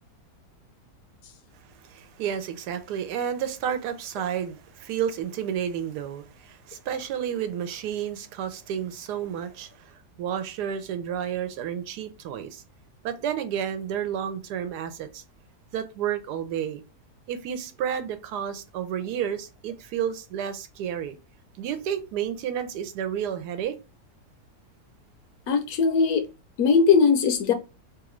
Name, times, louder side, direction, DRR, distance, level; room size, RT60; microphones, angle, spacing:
voice 1, 1.9-9.9 10.2-12.6 13.0-15.2 15.7-16.8 17.3-21.2 21.6-23.8, right 9 dB, 85° right, 1.1 m, -31 dB
voice 2, 25.5-26.2 26.6-27.5, left 5 dB, 70° left, 1.1 m, -20 dB
3.1 x 2.4 x 3.0 m
omnidirectional pair, 1.7 m